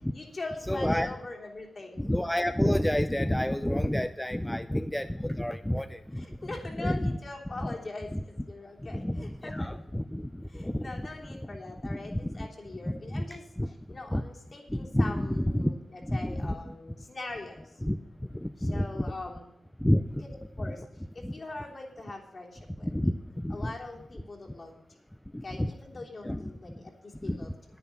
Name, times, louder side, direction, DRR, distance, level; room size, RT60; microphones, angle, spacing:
voice 1, 0.1-2.1 6.2-9.7 10.5-17.8 18.6-19.4 20.2-22.9 23.5-24.8 25.4-27.5, left 2 dB, 50° left, -1 dB, 3.2 m, -42 dB
voice 2, 0.7-1.1 2.0-7.2 7.6-7.7 8.1-8.2 8.9-11.5 11.8-12.5 12.9-13.3 13.6-13.7 14.1-14.2 14.7-15.7 16.0-16.8 17.8-18.0 18.3-19.1 19.8-20.2 20.7-20.8 21.2-21.3 22.8-23.7 25.3-25.7 26.2-26.5 27.2-27.4, left 1 dB, 10° left, 9 dB, 0.5 m, -30 dB
10.5 x 9.7 x 5.8 m, 0.84 s
cardioid pair, 65°, 0 cm